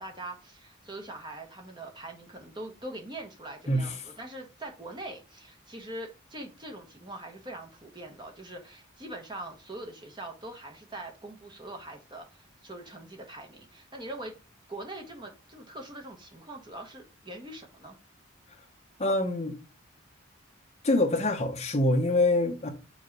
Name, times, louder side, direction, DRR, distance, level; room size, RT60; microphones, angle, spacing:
voice 1, 0.0-14.3 14.7-18.0, right 1 dB, 20° right, 1.3 m, -42 dB
voice 2, 19.0-19.6 20.8-22.7, left 2 dB, 30° left, 1.0 m, -25 dB
5.0 x 4.0 x 5.3 m
head